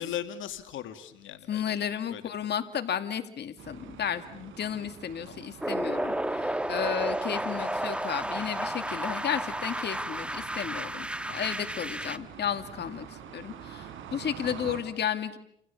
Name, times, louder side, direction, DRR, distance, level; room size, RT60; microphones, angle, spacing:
voice 1, 0.0-1.8 2.1-2.5 5.2-5.4, left 10 dB, 80° left, 8 dB, 2.4 m, -38 dB
voice 2, 1.5-15.4, left 8 dB, 60° left, 8 dB, 2.3 m, -33 dB
sound 1, 3.6-14.8, right 9 dB, 85° right, 5.0 m, -46 dB
sound 2, 5.6-12.2, right 1 dB, 5° right, 1.4 m, -32 dB
30.0 x 27.5 x 7.1 m, 0.71 s
cardioid pair, 90°, 20 cm